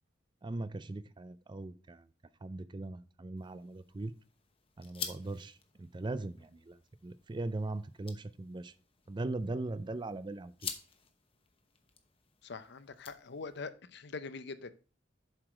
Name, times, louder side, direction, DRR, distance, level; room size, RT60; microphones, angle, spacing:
voice 1, 0.4-2.1 2.4-4.1 4.8-8.7 9.1-10.7, right 2 dB, 25° right, 14 dB, 0.4 m, -39 dB
sound 1, 3.4-13.7, left 6 dB, 30° left, 0.9 m, -49 dB
voice 2, 12.4-14.7, left 4 dB, 60° left, 13 dB, 0.6 m, -43 dB
7.4 x 4.8 x 4.9 m, 0.36 s
head